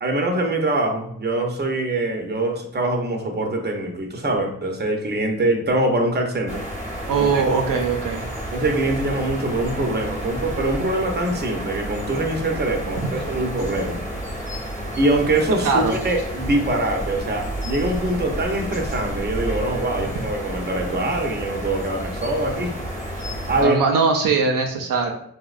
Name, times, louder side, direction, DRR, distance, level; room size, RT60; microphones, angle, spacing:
voice 1, 0.0-6.6 7.2-7.4 8.5-14.0 15.0-22.7 23.5-23.8, right 2 dB, 30° right, 2 dB, 0.7 m, -23 dB
sound 1, 6.5-23.6, right 1 dB, 20° left, 1.0 m, -31 dB
voice 2, 7.1-8.3 15.6-15.9 23.6-25.1, right 5 dB, 80° right, 2 dB, 0.5 m, -20 dB
4.2 x 2.1 x 2.4 m, 0.70 s
cardioid pair, 65°, 33 cm